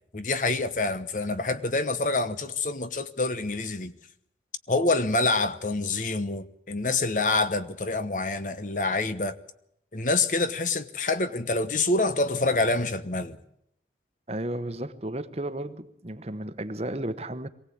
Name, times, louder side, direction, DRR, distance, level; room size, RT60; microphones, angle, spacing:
voice 1, 0.1-3.9 4.7-9.4 9.9-13.4, left 3 dB, 45° left, 1.1 m, -26 dB
voice 2, 14.3-17.5, right 1 dB, 35° right, 1.1 m, -33 dB
23.0 x 17.5 x 8.7 m
head